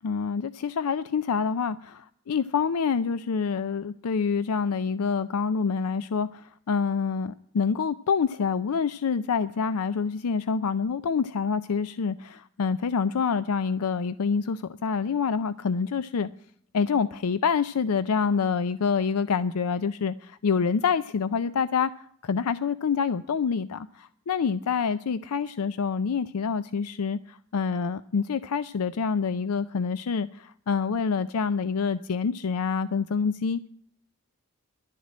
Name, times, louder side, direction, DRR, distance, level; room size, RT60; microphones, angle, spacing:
voice 1, 0.0-16.3 16.7-21.9 22.2-33.7, left 5 dB, 90° left, 14 dB, 0.5 m, -27 dB
11.5 x 7.3 x 9.5 m, 0.64 s
head